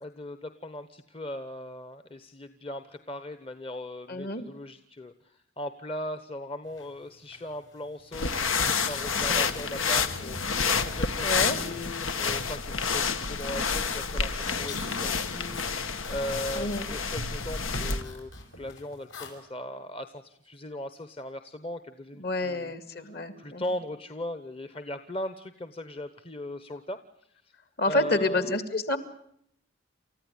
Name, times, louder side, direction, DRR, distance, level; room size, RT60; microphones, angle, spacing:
voice 1, 0.0-14.3 14.6-15.6 16.1-18.3 18.6-22.7 23.0-23.1 23.4-27.0 27.8-28.6, left 1 dB, 30° left, 10 dB, 1.0 m, -38 dB
voice 2, 4.1-4.4 11.2-11.6 16.5-16.9 22.2-23.6 27.8-29.0, left 2 dB, 50° left, 10 dB, 2.3 m, -28 dB
sound 1, 6.7-6.9 7.2-11.3 11.6-19.3, left 2 dB, 70° left, 6.1 m, -45 dB
sound 2, 8.1-18.0, left 5 dB, 85° left, 1.7 m, -29 dB
29.0 x 14.5 x 9.9 m, 0.71 s
head